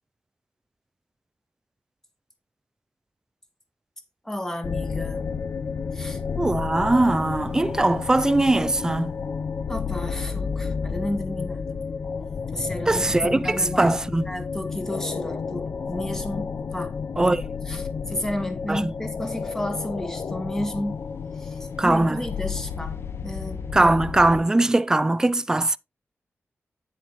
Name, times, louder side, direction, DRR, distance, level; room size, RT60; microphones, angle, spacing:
voice 1, 4.2-5.3 5.9-6.2 9.7-11.8 12.5-14.0 14.3-17.0 17.7-21.0 21.4-23.9, left 1 dB, 10° left, 1.9 m, -32 dB
sound 1, 4.6-24.4, left 5 dB, 70° left, 0.8 m, -31 dB
voice 2, 6.4-9.1 12.9-14.2 17.2-17.4 18.7-18.9 21.8-22.2 23.7-25.8, right 2 dB, 15° right, 0.4 m, -21 dB
10.0 x 7.5 x 3.1 m
wide cardioid pair, 160°, 4 cm